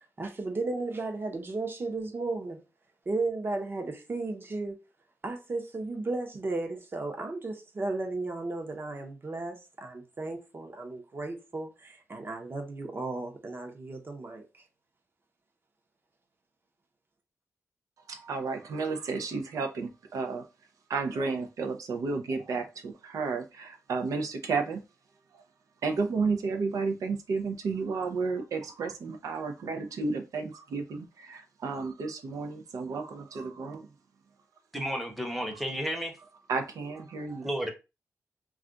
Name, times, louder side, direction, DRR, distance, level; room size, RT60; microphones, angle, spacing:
voice 1, 0.2-2.6 3.1-4.8 5.2-14.4, right 3 dB, 40° right, 0.7 m, -34 dB
voice 2, 18.1-20.4 20.9-24.8 25.8-33.9 36.5-37.5, right 4 dB, 85° right, 0.5 m, -32 dB
voice 3, 34.7-36.1 37.4-37.7, equal, ahead, 0.7 m, -32 dB
2.4 x 2.2 x 3.7 m
wide cardioid pair, 95°, 6 cm